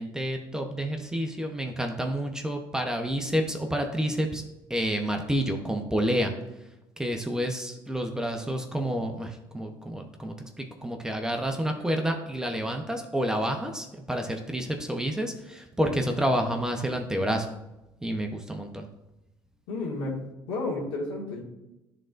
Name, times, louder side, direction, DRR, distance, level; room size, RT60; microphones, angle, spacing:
voice 1, 0.0-4.4 4.7-6.3 7.0-17.5 18.0-18.9, equal, 5° right, 3 dB, 0.9 m, -29 dB
voice 2, 19.7-20.2 20.5-21.4, left 2 dB, 80° left, -2 dB, 1.9 m, -31 dB
11.0 x 3.9 x 2.5 m, 0.95 s
supercardioid pair, 85°, 9 cm